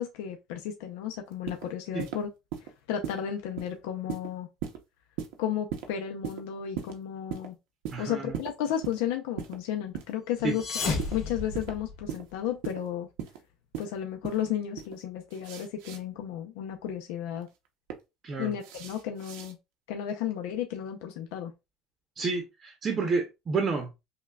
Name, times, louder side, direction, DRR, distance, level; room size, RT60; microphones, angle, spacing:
voice 1, 0.0-2.3 2.6-4.5 5.4-7.5 8.0-13.1 13.8-17.5 18.4-19.6 19.9-21.5, left 10 dB, 90° left, 0.6 m, -33 dB
sound 1, 1.3-1.7 2.0-2.2 2.5-2.7 3.0-3.2 3.6-3.7 4.1-4.3 4.6-4.8 5.2-5.4 5.7-5.9 6.2-6.4 6.8-7.0 7.3-7.5 7.9-8.0 8.3-8.5 8.8-9.0 9.4-9.6 9.9-10.1 10.5-10.6 11.0-11.2 11.5-11.7 12.1-12.2 12.6-12.8 13.2-13.4 13.7-13.9 14.2-14.4 14.8-15.0 15.3-16.0 17.4-17.9 18.6-19.5, right 9 dB, 85° right, 0.8 m, -37 dB
voice 2, 7.9-8.4 10.4-10.5 18.2-18.5 22.2-23.9, right 4 dB, 25° right, 0.7 m, -30 dB
sound 2, 10.4-12.3, left 4 dB, 50° left, 2.0 m, -33 dB
5.5 x 2.3 x 2.3 m
cardioid pair, 155°, 0 cm